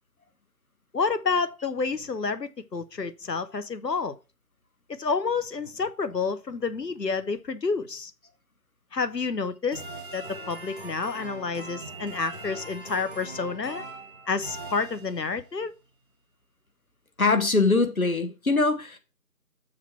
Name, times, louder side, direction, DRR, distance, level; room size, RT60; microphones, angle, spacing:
voice 1, 0.9-4.2 4.9-8.1 8.9-9.8 10.1-13.8 14.3-15.7, left 4 dB, 90° left, 1.0 m, -29 dB
sound 1, 9.7-15.4, right 2 dB, 30° left, 1.5 m, -41 dB
voice 2, 17.2-19.0, left 3 dB, 60° left, 1.3 m, -22 dB
6.6 x 4.4 x 5.9 m
figure-of-eight pair, 175°, 48 cm